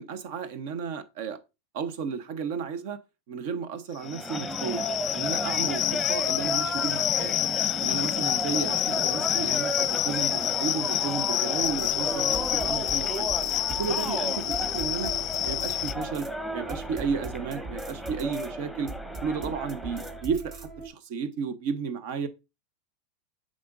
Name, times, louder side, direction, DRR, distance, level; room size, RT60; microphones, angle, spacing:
voice 1, 0.0-1.4 1.7-3.0 3.3-4.9 5.1-7.5 7.8-13.3 13.7-15.1 15.4-16.3 16.5-18.9 19.2-22.3, right 6 dB, 65° right, 0.9 m, -33 dB
sound 1, 4.0-15.9, left 14 dB, 45° left, 0.3 m, -28 dB
sound 2, 4.0-20.2, equal, 5° right, 1.0 m, -34 dB
sound 3, 11.6-20.9, right 3 dB, 35° right, 1.1 m, -40 dB
7.6 x 5.0 x 2.6 m
hypercardioid pair, 110°, 0 cm